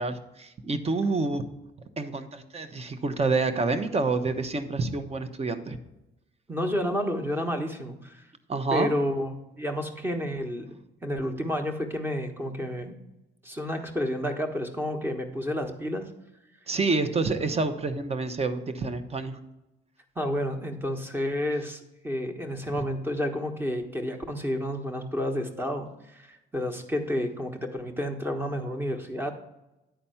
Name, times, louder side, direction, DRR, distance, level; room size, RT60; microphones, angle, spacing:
voice 1, 0.0-1.4 2.0-5.8 8.5-8.9 16.7-19.4 22.8-22.9, right 3 dB, 30° right, 10 dB, 0.9 m, -28 dB
voice 2, 6.5-8.2 8.7-10.7 11.0-12.9 13.4-16.1 20.1-29.3, equal, 10° right, 5 dB, 1.2 m, -30 dB
10.0 x 4.2 x 5.7 m, 0.95 s
cardioid pair, 90°, 20 cm